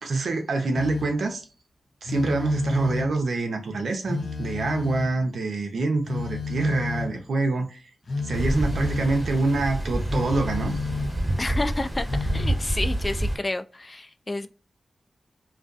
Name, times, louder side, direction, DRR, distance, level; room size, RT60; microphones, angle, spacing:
voice 1, 0.0-1.5 2.0-7.8 8.2-10.8, right 3 dB, 80° right, 0.6 m, -26 dB
Telephone, 0.7-1.3 2.0-3.3 4.0-5.3 6.0-7.3 8.0-9.2 10.1-11.3 12.1-12.6, left 4 dB, 60° left, 0.7 m, -31 dB
sound 1, 8.3-13.4, right 1 dB, 10° right, 1.4 m, -28 dB
voice 2, 11.4-14.5, left 2 dB, 30° left, 0.3 m, -30 dB
2.4 x 2.3 x 2.4 m
cardioid pair, 60°, 0 cm